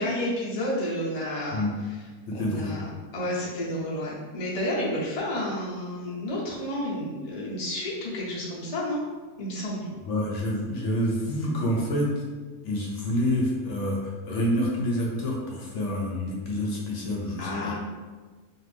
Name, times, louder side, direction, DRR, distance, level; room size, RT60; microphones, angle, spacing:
voice 1, 0.0-1.6 2.3-2.9 3.1-9.0 9.4-9.9 17.4-17.7, left 1 dB, 45° left, -5 dB, 0.4 m, -30 dB
voice 2, 2.3-2.7 9.9-12.3 12.6-17.7, left 1 dB, 60° left, -3 dB, 0.9 m, -28 dB
2.6 x 2.4 x 3.2 m, 1.4 s
omnidirectional pair, 1.5 m